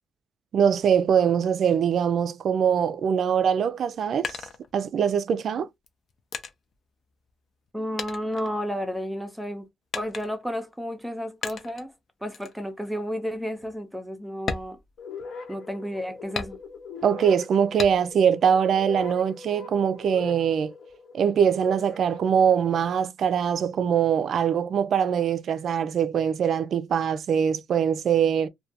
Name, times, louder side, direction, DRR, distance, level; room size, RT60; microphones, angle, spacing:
voice 1, 0.5-4.4 4.7-5.7 17.0-20.7 21.1-28.5, right 8 dB, 60° right, 0.3 m, -23 dB
sound 1, 3.7-5.2 5.8-7.7 8.0-9.1 9.9-10.6 11.4-11.9 12.3-12.6 13.0-13.1 13.6-13.7 14.4-15.6 16.4-17.0 17.8-18.3 18.7-19.6, left 5 dB, 55° left, 0.5 m, -37 dB
voice 2, 7.7-9.7 9.9-11.9 12.2-14.8 15.5-16.6, equal, 5° right, 0.6 m, -32 dB
sound 2, 15.0-23.0, left 4 dB, 75° left, 1.2 m, -41 dB
2.4 x 2.2 x 2.6 m
cardioid pair, 90°, 0 cm